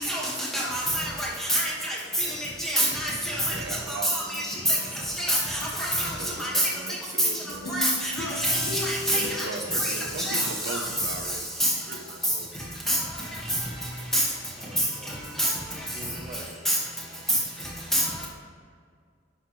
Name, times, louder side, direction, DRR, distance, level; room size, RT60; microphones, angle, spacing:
voice 1, 0.5-1.7 2.6-3.4 4.3-4.4 5.2-6.1 6.4-6.6 7.7-8.1 8.4-9.2 9.8-10.4 10.7-10.8 11.6-11.7 12.9-13.0 14.1-14.2 15.4-15.5 16.7-16.8 17.9-18.0, equal, ahead, -5 dB, 1.6 m, -26 dB
voice 2, 1.7-2.5 14.5-15.2 15.7-16.5, right 1 dB, 30° right, -4 dB, 0.7 m, -46 dB
voice 3, 3.4-5.1 6.1-7.9 9.0-12.7 18.2-18.3, right 3 dB, 75° right, 4 dB, 0.7 m, -39 dB
sound 1, 7.6-10.9 11.4-11.5, left 2 dB, 75° left, 1.3 m, -37 dB
10.0 x 5.6 x 3.1 m, 2.1 s
head